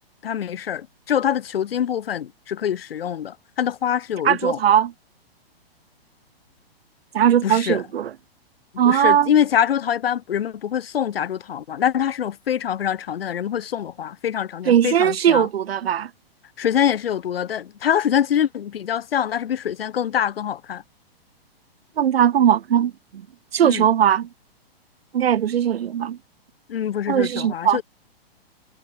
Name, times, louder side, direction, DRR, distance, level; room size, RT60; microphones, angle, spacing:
voice 1, 0.2-4.6 7.4-7.8 8.8-15.5 16.6-20.8 23.6-23.9 26.7-27.8, left 9 dB, 70° left, 4.8 m, -24 dB
voice 2, 4.2-4.9 7.1-8.1 8.8-9.3 14.6-16.1 22.0-23.2 23.5-24.3 25.1-26.2 27.1-27.8, right 9 dB, 75° right, 1.6 m, -19 dB
hypercardioid pair, 135°, 31 cm